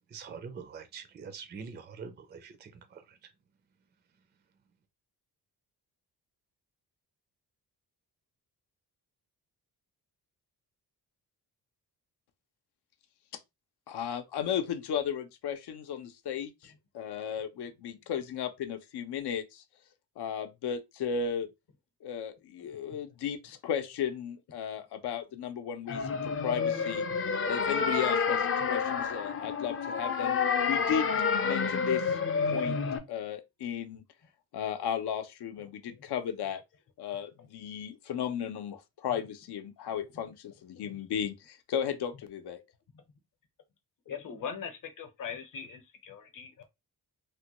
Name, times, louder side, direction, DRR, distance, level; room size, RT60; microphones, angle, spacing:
voice 1, 0.1-3.3, right 6 dB, 30° right, 0.4 m, -45 dB
voice 2, 13.9-19.6 20.2-21.5 22.0-27.1 27.5-30.4 30.7-31.1 31.4-32.2 32.5-32.8 33.1-34.0 34.5-36.6 37.0-42.6, left 8 dB, 85° left, 0.6 m, -35 dB
voice 3, 22.6-23.0 35.6-35.7 40.5-40.6 40.8-40.9 42.9-43.0 44.1-46.6, left 7 dB, 55° left, 0.8 m, -41 dB
sound 1, 25.9-33.0, left 5 dB, 35° left, 0.4 m, -29 dB
3.1 x 2.2 x 2.9 m
wide cardioid pair, 135°, 39 cm